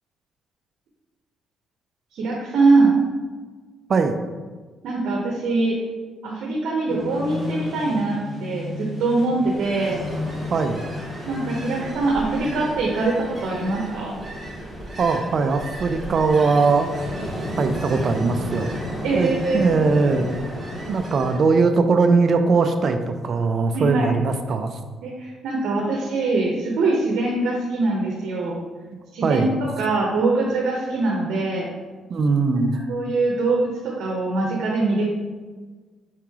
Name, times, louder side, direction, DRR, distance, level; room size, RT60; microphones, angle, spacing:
voice 1, 2.1-2.9 4.8-5.8 6.2-10.0 11.3-14.2 19.0-19.6 23.7-24.1 25.0-28.6 29.1-31.7 32.5-35.0, right 3 dB, 80° right, -2 dB, 0.8 m, -23 dB
sound 1, 6.9-12.6, left 3 dB, 20° left, 1.4 m, -34 dB
Ocean, 9.3-21.5, equal, 10° right, 1.5 m, -33 dB
voice 2, 10.5-10.8 15.0-17.0 17.6-18.7 19.1-20.4 20.9-24.8 29.2-29.5 32.1-32.7, right 4 dB, 50° right, 7 dB, 0.4 m, -20 dB
4.8 x 3.0 x 3.5 m, 1.4 s
cardioid pair, 90°, 0 cm